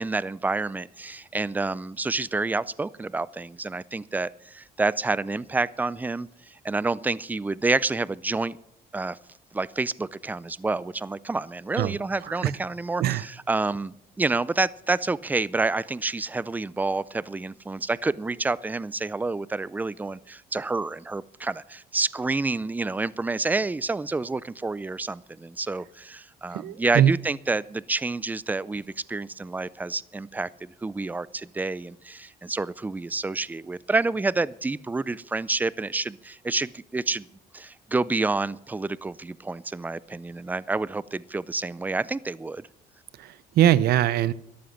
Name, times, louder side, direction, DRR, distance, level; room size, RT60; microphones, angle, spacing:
voice 1, 0.0-8.6 8.9-9.2 9.5-37.3 37.5-42.7, right 3 dB, 10° right, 20 dB, 0.4 m, -28 dB
voice 2, 26.5-27.1 43.2-44.3, right 11 dB, 65° right, 18 dB, 0.7 m, -21 dB
13.0 x 11.5 x 5.8 m, 0.76 s
cardioid pair, 110°, 17 cm